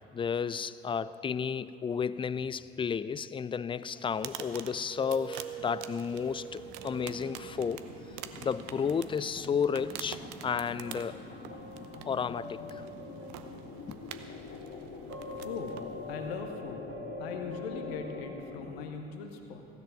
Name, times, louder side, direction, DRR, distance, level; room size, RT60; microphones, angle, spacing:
voice 1, 0.1-7.9 8.4-11.2 12.1-12.8 13.9-14.0, left 6 dB, 15° left, 0.4 m, -32 dB
sound 1, 0.6-1.8 4.9-8.8 10.7-14.6 15.1-18.3, right 1 dB, 45° right, 2.1 m, -45 dB
sound 2, 3.9-16.5, right 10 dB, 65° right, 0.8 m, -47 dB
sound 3, 6.4-18.9, left 4 dB, 50° left, 1.8 m, -46 dB
voice 2, 15.4-15.8 16.1-16.9 17.2-19.7, left 5 dB, 75° left, 1.0 m, -40 dB
15.5 x 10.5 x 5.4 m
figure-of-eight pair, 45°, 31 cm